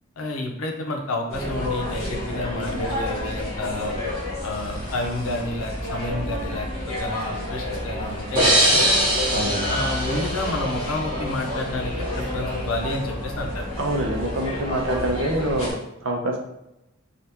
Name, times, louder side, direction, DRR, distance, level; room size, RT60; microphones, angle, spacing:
voice 1, 0.2-3.9 4.4-7.2 7.5-8.9 9.6-13.7, left 2 dB, 90° left, 2 dB, 0.6 m, -30 dB
sound 1, 1.3-15.7, left 1 dB, 30° left, 1.3 m, -30 dB
sound 2, 8.4-11.1, equal, 25° right, 1.2 m, -22 dB
voice 2, 9.3-9.7 13.8-16.4, right 1 dB, 65° right, 1 dB, 0.6 m, -26 dB
3.4 x 2.4 x 2.8 m, 0.88 s
head